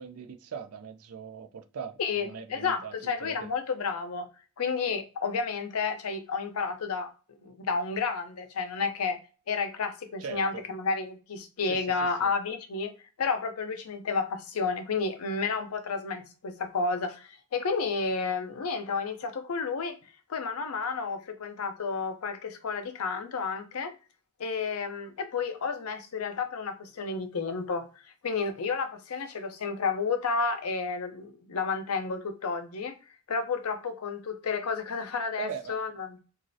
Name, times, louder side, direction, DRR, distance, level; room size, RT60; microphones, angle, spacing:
voice 1, 0.0-3.5 10.2-10.6 11.7-11.8 12.2-12.3 35.4-35.8, right 6 dB, 80° right, 0.5 m, -40 dB
voice 2, 2.0-4.3 4.6-7.1 7.4-9.2 9.5-12.9 13.2-20.0 20.3-23.9 24.4-27.9 28.2-33.0 33.3-36.2, left 4 dB, 80° left, 0.6 m, -31 dB
3.1 x 2.4 x 2.6 m
head